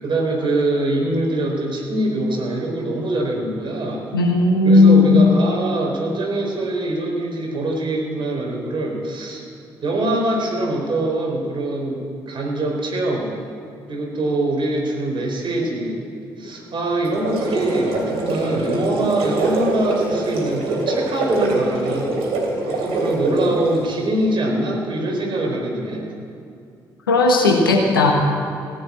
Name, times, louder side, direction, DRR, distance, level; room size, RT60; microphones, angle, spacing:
voice 1, 0.0-4.0 4.6-9.4 9.8-13.3 13.9-16.0 16.4-22.2 22.6-26.0, right 1 dB, 45° right, -1 dB, 4.4 m, -23 dB
voice 2, 4.1-5.2 27.1-28.1, left 3 dB, 85° left, 1 dB, 1.5 m, -14 dB
sound 1, 17.0-23.8, right 2 dB, 65° right, 3.3 m, -24 dB
16.0 x 9.0 x 8.6 m, 2.4 s
figure-of-eight pair, 40°, 11 cm